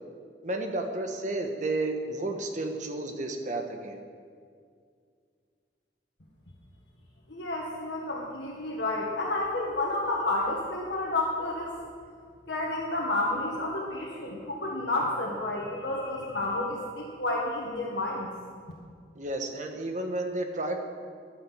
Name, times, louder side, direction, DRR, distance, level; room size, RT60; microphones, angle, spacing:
voice 1, 0.4-4.0 19.1-20.8, right 2 dB, 45° right, 4 dB, 1.4 m, -32 dB
voice 2, 7.3-11.8 12.5-18.3, left 2 dB, 75° left, -2 dB, 1.7 m, -30 dB
11.5 x 9.8 x 7.4 m, 2.1 s
head